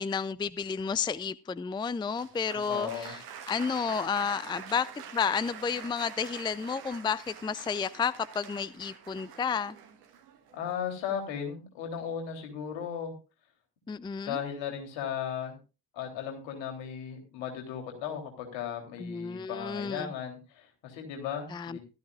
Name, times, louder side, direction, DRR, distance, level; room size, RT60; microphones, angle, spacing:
voice 1, 0.0-3.2 3.5-4.9 5.1-9.8 13.9-14.4 19.0-20.1 21.5-21.8, left 6 dB, 10° left, 19 dB, 0.5 m, -31 dB
Applause, 2.1-11.0, right 8 dB, 80° right, 1.5 m, -46 dB
voice 2, 2.7-3.1 10.5-13.1 14.3-15.6 15.9-21.8, left 8 dB, 70° left, 3 dB, 3.6 m, -36 dB
15.5 x 13.0 x 2.5 m, 0.30 s
figure-of-eight pair, 40°, 47 cm